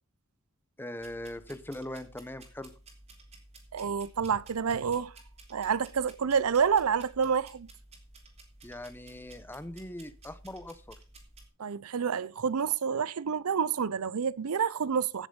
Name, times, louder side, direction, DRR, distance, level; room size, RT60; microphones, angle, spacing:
voice 1, 0.8-2.7 8.6-11.0, left 1 dB, 10° left, 0.7 m, -41 dB
sound 1, 1.0-11.5, right 2 dB, 30° right, 3.0 m, -54 dB
voice 2, 3.7-5.1 5.5-7.7 11.6-15.3, right 6 dB, 90° right, 0.5 m, -28 dB
15.5 x 6.9 x 5.3 m
head